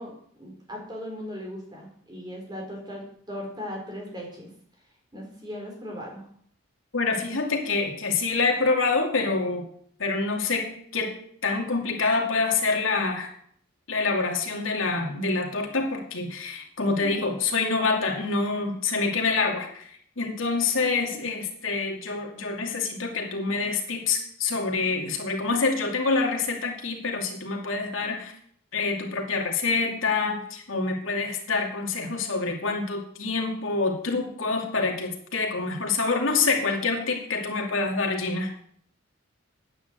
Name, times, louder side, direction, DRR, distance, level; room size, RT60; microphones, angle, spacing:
voice 1, 0.0-4.5 5.1-6.3 17.0-17.3 20.7-21.2, equal, 20° right, -1 dB, 4.6 m, -38 dB
voice 2, 6.9-9.7 10.0-13.3 13.9-19.9 20.2-28.3 28.7-38.5, left 4 dB, 80° left, 2 dB, 2.5 m, -26 dB
9.9 x 9.4 x 7.8 m, 0.63 s
head